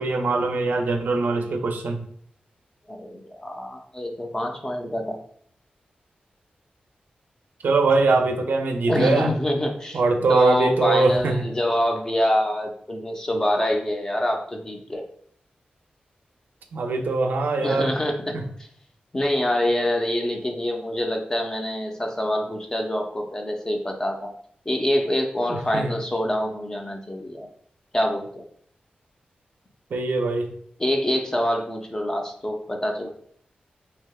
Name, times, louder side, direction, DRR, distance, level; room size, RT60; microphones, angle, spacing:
voice 1, 0.0-2.0 7.6-9.3 9.9-11.4 16.7-17.9 18.3-18.4 25.5-25.9 29.9-30.5, right 3 dB, 80° right, 4 dB, 0.4 m, -22 dB
voice 2, 2.9-5.2 8.9-10.0 10.3-15.0 17.6-18.4 19.1-24.3 24.7-27.5 27.9-28.4 30.8-33.1, left 1 dB, 20° left, 3 dB, 0.4 m, -25 dB
3.3 x 2.7 x 2.3 m, 0.62 s
wide cardioid pair, 115°, 3 cm